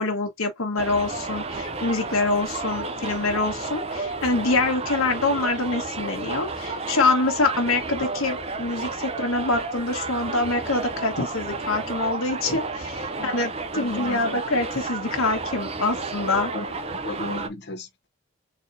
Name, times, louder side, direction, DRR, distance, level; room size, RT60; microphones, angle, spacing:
voice 1, 0.0-16.5, left 3 dB, 80° left, 1.3 m, -25 dB
Subway metro underground, 0.8-17.5, right 3 dB, 30° right, 0.5 m, -32 dB
voice 2, 13.1-13.4 13.7-14.2 16.5-18.1, left 2 dB, 50° left, 0.9 m, -35 dB
4.0 x 2.9 x 2.6 m
head